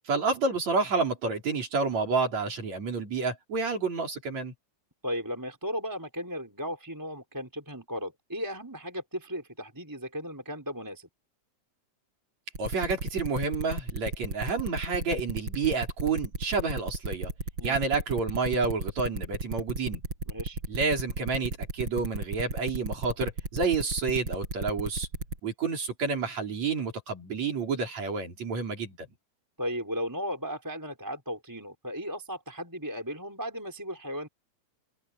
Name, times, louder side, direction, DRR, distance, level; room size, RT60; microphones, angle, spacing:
voice 1, 0.1-4.5 12.6-17.3 17.6-20.0 20.7-25.1 25.4-29.0, right 4 dB, 60° right, 5.7 m, -29 dB
voice 2, 5.0-11.1 17.6-17.8 20.3-20.6 29.6-34.3, equal, 5° right, 4.9 m, -36 dB
sound 1, 12.5-25.4, right 2 dB, 40° right, 7.5 m, -34 dB
omnidirectional pair, 3.5 m